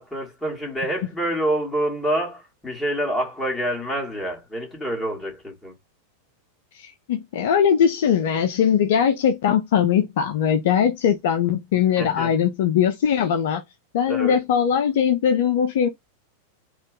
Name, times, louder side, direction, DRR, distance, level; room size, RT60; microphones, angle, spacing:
voice 1, 0.0-5.7 12.0-12.3 14.1-14.4, right 1 dB, 10° left, 2.1 m, -27 dB
voice 2, 6.7-13.6 13.9-15.9, left 8 dB, 55° left, 0.6 m, -20 dB
4.3 x 2.5 x 4.8 m
figure-of-eight pair, 90°, 0 cm